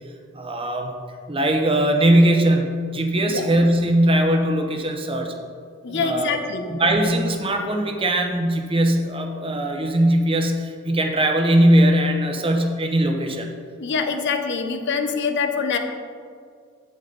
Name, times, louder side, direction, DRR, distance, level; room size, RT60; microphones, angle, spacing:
voice 1, 0.3-0.9 1.3-5.3 5.9-6.4 6.7-13.5, right 1 dB, 25° right, 4 dB, 0.8 m, -20 dB
voice 2, 5.8-6.7 13.8-15.8, left 5 dB, 60° left, 7 dB, 0.7 m, -24 dB
8.9 x 8.2 x 3.9 m, 2.1 s
head